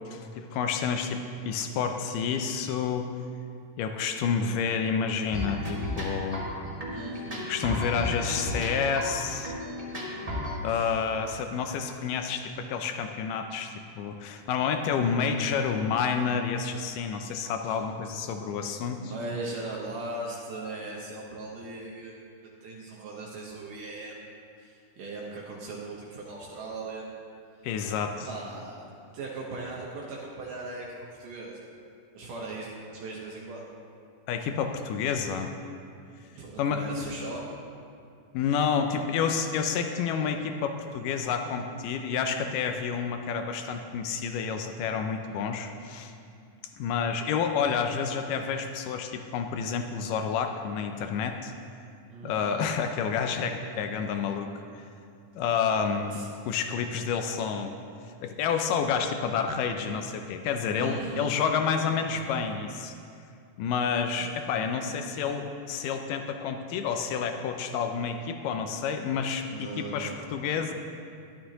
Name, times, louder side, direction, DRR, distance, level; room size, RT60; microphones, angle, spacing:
voice 1, 0.0-3.1 3.8-6.5 7.5-9.5 10.6-19.1 27.6-28.3 34.3-35.5 36.6-36.8 38.3-46.1 46.8-51.5 52.2-54.8 55.4-56.2 56.5-57.7 58.2-62.9 63.6-70.7, left 6 dB, 80° left, 6 dB, 1.9 m, -29 dB
sound 1, 5.3-10.6, left 1 dB, 25° right, 0.7 m, -34 dB
voice 2, 6.9-7.5 10.7-11.0 17.7-17.8 19.0-22.1 22.6-24.3 24.6-27.1 28.3-28.9 29.1-31.6 32.1-33.6 36.2-37.5 52.1-52.7 56.1-56.3 60.8-61.4 64.2-64.3 69.5-70.2, right 3 dB, 70° right, -3 dB, 2.4 m, -39 dB
13.0 x 12.0 x 2.9 m, 2.4 s
omnidirectional pair, 4.3 m